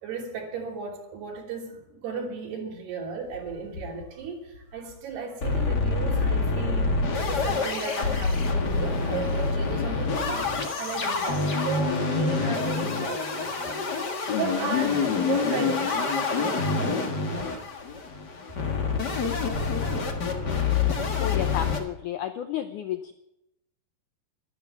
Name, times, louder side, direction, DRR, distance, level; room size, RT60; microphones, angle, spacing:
voice 1, 0.0-10.5 10.8-13.8 14.3-17.6, right 5 dB, 90° right, -1 dB, 5.3 m, -35 dB
sound 1, 3.3-4.2 4.5-4.6 4.9-5.0 5.4-21.8, left 4 dB, 45° left, 1.3 m, -26 dB
voice 2, 21.2-23.1, left 10 dB, 90° left, 8 dB, 1.7 m, -32 dB
12.5 x 12.5 x 8.2 m, 0.86 s
omnidirectional pair, 4.6 m